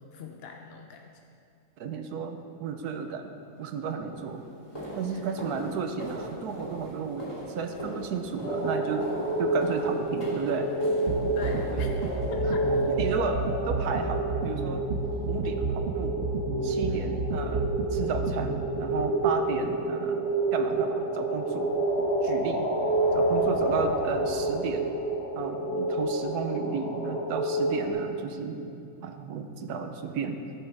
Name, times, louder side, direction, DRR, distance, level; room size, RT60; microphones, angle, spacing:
voice 1, 0.1-1.0 5.1-5.3 11.3-11.9 12.3-12.7 16.9-17.1 23.4-23.6, left 5 dB, 55° left, 2 dB, 0.7 m, -42 dB
voice 2, 1.8-3.3 3.6-4.4 4.9-9.1 9.4-10.7 11.2-11.4 11.7-11.8 12.4-12.6 12.8-14.9 15.3-16.2 16.6-22.7 23.1-24.9 25.3-30.5, right 5 dB, 90° right, 6 dB, 1.3 m, -33 dB
sound 1, 3.4-3.6 4.1-13.3 13.8-14.2 14.4-14.6 15.0-15.2 15.6-15.7 16.3-16.4, equal, 20° left, 2.7 m, -40 dB
sound 2, 8.4-27.9, right 2 dB, 75° left, 2.0 m, -29 dB
sound 3, 11.1-18.6, right 4 dB, 55° right, 1.0 m, -31 dB
14.5 x 8.9 x 3.5 m, 2.4 s
omnidirectional pair, 1.6 m